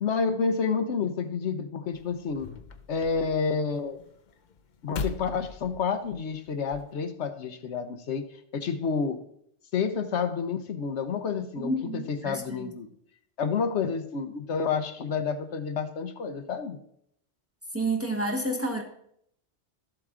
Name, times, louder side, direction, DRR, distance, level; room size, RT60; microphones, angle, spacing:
voice 1, 0.0-2.5 2.9-4.0 4.8-8.3 8.5-9.2 9.7-12.9 13.4-16.8, left 5 dB, 75° left, 8 dB, 1.1 m, -29 dB
sound 1, 1.9-6.9, left 4 dB, 50° left, 0.7 m, -41 dB
voice 2, 11.6-12.7 17.7-18.8, right 2 dB, 15° right, 2 dB, 1.2 m, -30 dB
13.0 x 7.8 x 3.7 m, 0.71 s
omnidirectional pair, 1.2 m